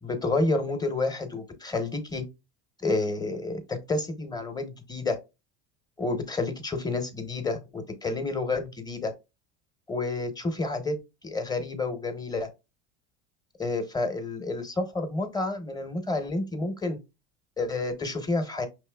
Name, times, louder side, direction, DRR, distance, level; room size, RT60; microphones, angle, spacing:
voice 1, 0.0-2.2 2.8-5.2 6.0-9.1 9.9-11.0 11.2-12.5 13.6-17.0 17.6-18.7, left 2 dB, 15° left, 0.8 m, -29 dB
5.4 x 3.0 x 2.2 m
supercardioid pair, 120°, 30 cm